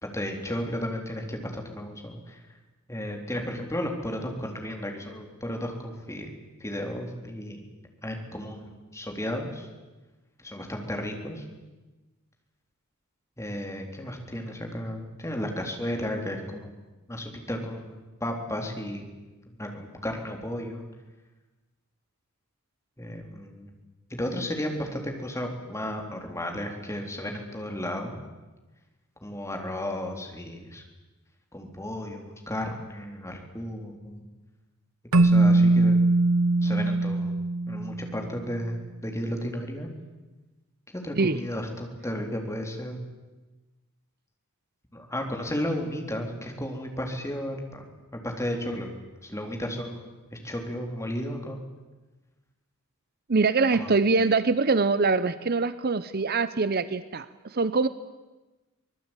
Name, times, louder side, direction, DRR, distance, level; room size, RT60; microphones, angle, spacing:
voice 1, 0.1-2.4 2.9-6.3 6.6-7.6 8.0-9.7 10.4-11.4 13.4-16.7 17.1-19.0 19.6-20.9 23.0-23.7 24.1-28.2 29.2-30.8 31.5-34.2 35.1-36.0 36.6-37.3 37.7-39.9 40.9-43.0 44.9-47.9 48.1-48.9 49.2-51.7 53.7-53.9, equal, 15° left, 3 dB, 3.8 m, -33 dB
Keyboard (musical), 35.1-38.4, right 2 dB, 85° right, 1.0 m, -21 dB
voice 2, 53.3-57.9, right 4 dB, 45° right, 14 dB, 0.7 m, -24 dB
24.5 x 20.0 x 9.1 m, 1.2 s
head